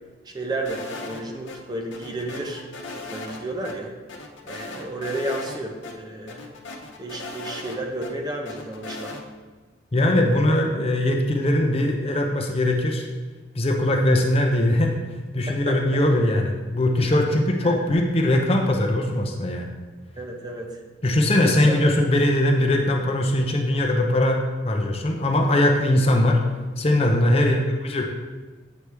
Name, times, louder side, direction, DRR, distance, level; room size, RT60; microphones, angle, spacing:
voice 1, 0.3-2.7 3.0-3.9 4.4-6.4 7.0-9.2 15.5-15.8 17.6-17.8 20.2-20.7 21.3-21.8 27.4-27.5, right 1 dB, 20° right, 2 dB, 0.6 m, -32 dB
sound 1, 0.6-1.6 1.9-3.4 3.6-3.7 4.1-5.6 5.8-5.9 6.3-8.1 8.4-9.2, left 3 dB, 85° left, 0.8 m, -37 dB
voice 2, 9.9-13.1 13.6-14.9 15.3-19.7 21.0-24.4 24.6-26.4 26.8-28.0, left 1 dB, 30° left, 2 dB, 0.6 m, -21 dB
8.0 x 4.7 x 3.4 m, 1.3 s
head